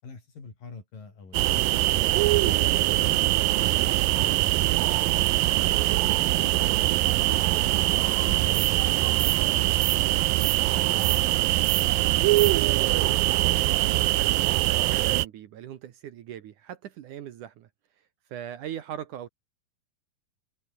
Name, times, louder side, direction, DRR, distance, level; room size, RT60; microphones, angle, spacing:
voice 1, 0.0-2.0 2.5-5.4 6.0-7.4 8.1-11.3, left 4 dB, 65° left, 8.3 m, -45 dB
sound 1, 1.3-15.3, right 18 dB, 80° right, 2.4 m, -23 dB
voice 2, 12.5-17.7 18.3-19.3, right 10 dB, 65° right, 2.5 m, -40 dB
open air
omnidirectional pair, 4.2 m